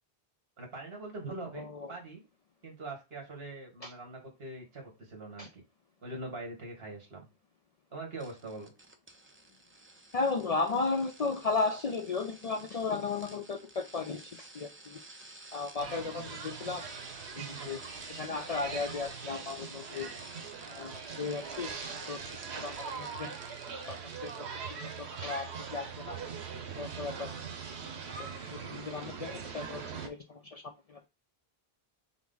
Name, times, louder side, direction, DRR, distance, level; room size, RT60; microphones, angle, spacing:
voice 1, 0.6-2.2 2.6-5.6 6.0-7.3 7.9-8.7 17.4-17.8 19.9-20.1, right 2 dB, 65° right, 1 dB, 1.7 m, -43 dB
sound 1, 8.2-24.6 24.9-25.2 25.5-25.6, right 2 dB, 20° right, 0.3 m, -52 dB
voice 2, 10.1-15.0 15.5-16.8 17.4-17.8 18.2-20.1 20.7-22.2 22.6-23.4 24.2-24.3 24.7-26.2 26.8-27.3 28.2-30.6 30.9-31.1, left 4 dB, 55° left, 5 dB, 0.4 m, -35 dB
sound 2, 15.8-30.1, right 6 dB, 85° right, 1.0 m, -42 dB
5.9 x 2.1 x 3.8 m, 0.26 s
omnidirectional pair, 1.1 m